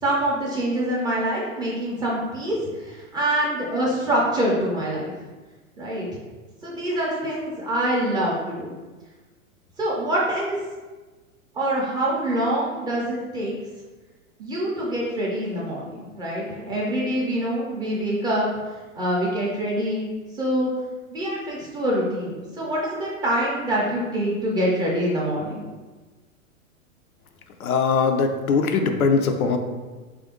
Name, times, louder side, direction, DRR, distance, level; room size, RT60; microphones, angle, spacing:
voice 1, 0.0-5.1 5.8-6.1 6.6-8.7 9.8-10.6 11.5-13.6 14.4-18.5 18.9-20.7 21.1-25.6, right 1 dB, 10° right, -5 dB, 0.4 m, -25 dB
voice 2, 27.6-29.6, left 5 dB, 85° left, 5 dB, 0.6 m, -21 dB
3.4 x 2.6 x 3.6 m, 1.3 s
hypercardioid pair, 115°, 42 cm